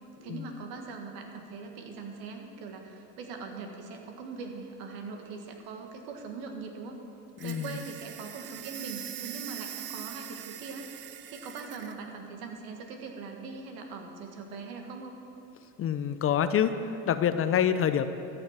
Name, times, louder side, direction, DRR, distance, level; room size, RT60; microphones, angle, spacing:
voice 1, 0.2-7.0 7.4-15.1, right 4 dB, 65° right, 3 dB, 1.9 m, -41 dB
voice 2, 7.4-7.8 15.8-18.1, left 9 dB, 35° left, 11 dB, 0.6 m, -27 dB
sound 1, 7.4-12.0, right 12 dB, 30° right, 0.4 m, -42 dB
13.5 x 6.9 x 7.5 m, 2.7 s
hypercardioid pair, 90°, 39 cm